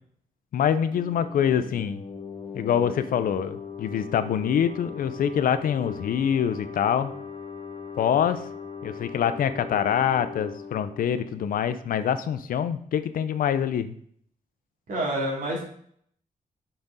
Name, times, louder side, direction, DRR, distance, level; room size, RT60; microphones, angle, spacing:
voice 1, 0.5-2.0 2.5-7.1 8.0-8.4 8.8-13.9, left 8 dB, 75° left, 11 dB, 0.5 m, -25 dB
sound 1, 0.9-12.3, left 6 dB, 30° left, 0.8 m, -40 dB
voice 2, 14.9-15.7, right 1 dB, 60° right, -2 dB, 2.6 m, -28 dB
5.9 x 5.1 x 4.0 m, 0.62 s
wide cardioid pair, 145°, 15 cm